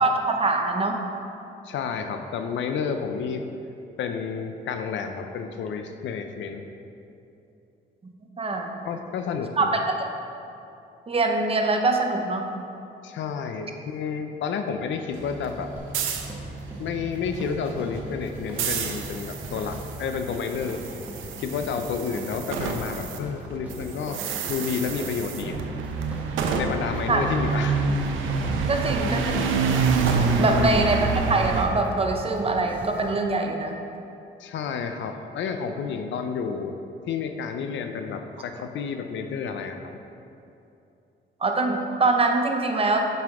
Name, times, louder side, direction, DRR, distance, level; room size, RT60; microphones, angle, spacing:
voice 1, 0.0-1.0 8.0-8.8 9.6-10.1 11.1-12.4 26.6-26.7 27.1-27.2 28.7-29.6 30.4-33.8 41.4-43.0, right 3 dB, 30° right, 3 dB, 0.7 m, -24 dB
voice 2, 1.6-3.5 4.0-6.7 8.8-9.8 13.0-15.7 16.8-20.8 21.4-24.2 24.5-25.6 26.5-27.9 28.2-28.3 30.4-30.7 34.4-36.8 37.1-40.0, left 6 dB, 70° left, 7 dB, 0.6 m, -30 dB
sound 1, 15.1-23.2 23.4-31.7, right 4 dB, 85° right, 0.6 m, -28 dB
sound 2, 15.8-33.2, equal, 10° right, 1.1 m, -41 dB
7.5 x 5.6 x 3.6 m, 2.7 s
cardioid pair, 90°, 20 cm